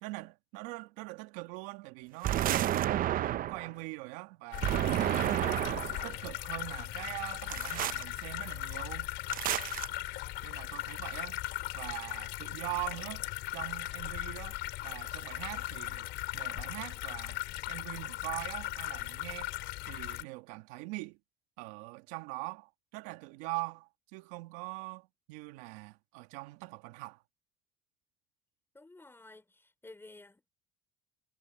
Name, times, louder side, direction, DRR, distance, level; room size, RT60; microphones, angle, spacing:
voice 1, 0.0-2.8 3.2-9.1 10.4-11.4 11.7-13.2 13.5-14.6 14.8-16.1 16.3-17.4 17.7-19.5 19.9-21.2 21.6-27.2, right 22 dB, 80° right, 2.1 m, -42 dB
sound 1, 2.2-3.7 4.6-6.1 7.5-8.0 9.3-9.9, right 12 dB, 45° right, 0.8 m, -30 dB
sound 2, 4.5-20.2, left 17 dB, 65° left, 3.5 m, -38 dB
voice 2, 28.7-30.5, left 2 dB, 10° left, 4.3 m, -53 dB
supercardioid pair, 105°, 19 cm